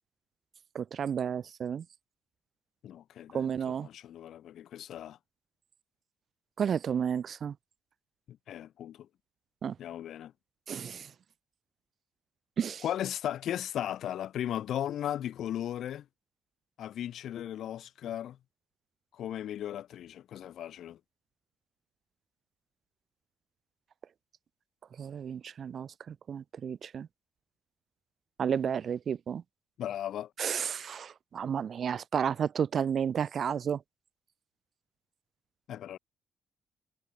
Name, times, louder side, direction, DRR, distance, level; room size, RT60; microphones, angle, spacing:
voice 1, 0.7-1.8 3.3-3.9 6.6-7.5 9.6-9.8 10.7-11.1 12.6-12.8 25.0-27.1 28.4-29.4 30.4-33.8, right 7 dB, 55° right, 0.5 m, -32 dB
voice 2, 2.8-5.2 8.3-9.1 9.8-10.3 12.8-16.0 16.8-18.4 19.1-21.0 29.8-30.3 35.7-36.0, left 11 dB, 70° left, 0.8 m, -36 dB
cardioid pair, 90°, 0 cm